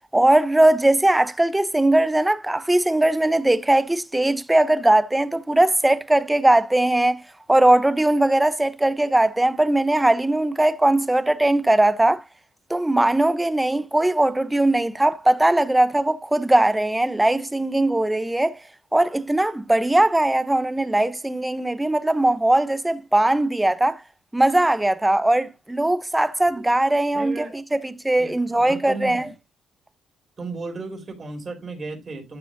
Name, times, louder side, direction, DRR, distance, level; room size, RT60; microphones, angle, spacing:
voice 1, 0.1-7.2 7.5-12.2 12.7-18.6 18.9-24.0 24.3-29.3, right 1 dB, 10° right, 0.8 m, -20 dB
voice 2, 27.1-27.6 28.2-29.3 30.4-32.4, right 3 dB, 35° right, 4.2 m, -35 dB
12.0 x 6.3 x 2.6 m
cardioid pair, 90°, 0 cm